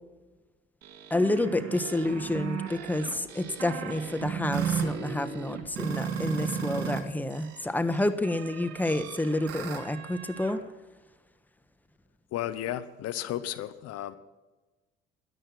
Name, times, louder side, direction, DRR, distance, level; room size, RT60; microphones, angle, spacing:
sound 1, 0.8-7.0 7.3-10.6, right 7 dB, 55° right, 3.5 m, -35 dB
voice 1, 1.1-10.6, left 1 dB, 5° left, 11 dB, 1.2 m, -29 dB
voice 2, 12.3-14.1, left 12 dB, 60° left, 13 dB, 0.9 m, -33 dB
13.5 x 11.5 x 6.0 m, 1.2 s
hypercardioid pair, 65°, 29 cm